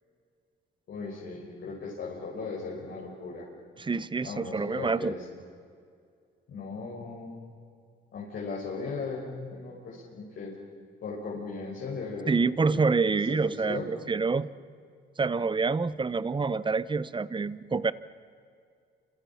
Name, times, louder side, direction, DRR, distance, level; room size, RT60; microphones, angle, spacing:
voice 1, 0.9-3.5 4.2-5.2 6.5-7.4 8.1-10.5 11.0-12.3 12.7-12.8 13.0-13.9, left 4 dB, 65° left, -5 dB, 6.3 m, -37 dB
voice 2, 3.8-5.1 12.3-14.5 15.2-17.9, right 4 dB, 25° right, 17 dB, 0.9 m, -27 dB
29.0 x 27.0 x 5.8 m, 2.3 s
cardioid pair, 90°, 20 cm